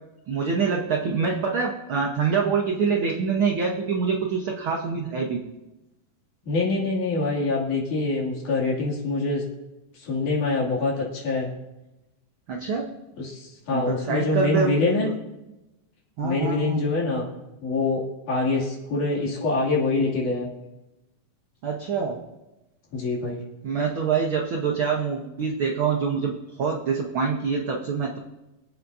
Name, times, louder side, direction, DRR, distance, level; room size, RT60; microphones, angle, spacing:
voice 1, 0.3-5.4 12.5-12.9 13.7-15.1 16.2-16.8 21.6-22.2 23.6-28.2, right 5 dB, 70° right, 0 dB, 1.2 m, -25 dB
voice 2, 6.5-9.4 10.0-11.5 13.2-15.1 16.2-17.3 17.6-20.5 22.9-23.4, left 3 dB, 70° left, -4 dB, 4.0 m, -25 dB
24.5 x 8.5 x 2.7 m, 0.98 s
omnidirectional pair, 3.7 m